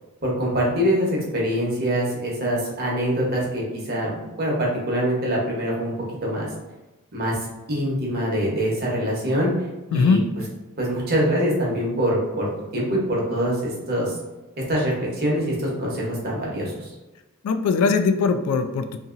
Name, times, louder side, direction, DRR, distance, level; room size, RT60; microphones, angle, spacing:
voice 1, 0.2-5.9 6.2-6.5 7.1-7.4 7.7-9.5 9.9-10.2 10.8-14.2 14.7-16.9, equal, 45° right, -3 dB, 0.8 m, -24 dB
voice 2, 9.9-10.2 17.4-19.0, left 4 dB, 90° left, 13 dB, 0.3 m, -20 dB
2.8 x 2.7 x 2.4 m, 1.1 s
head